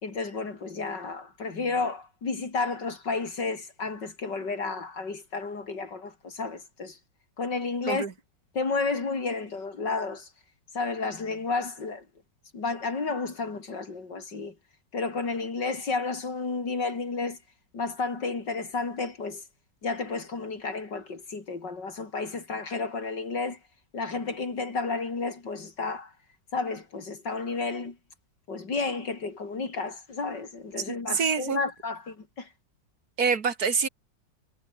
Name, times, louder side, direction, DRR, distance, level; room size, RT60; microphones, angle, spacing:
voice 1, 0.0-7.0 7.4-8.1 8.5-10.3 10.7-12.0 12.5-14.5 14.9-17.4 17.7-19.4 19.8-23.6 23.9-26.1 26.5-28.0 28.5-32.5, left 4 dB, 65° left, 4.2 m, -32 dB
voice 2, 30.9-31.6 33.2-33.9, right 5 dB, 55° right, 2.1 m, -26 dB
omnidirectional pair, 2.0 m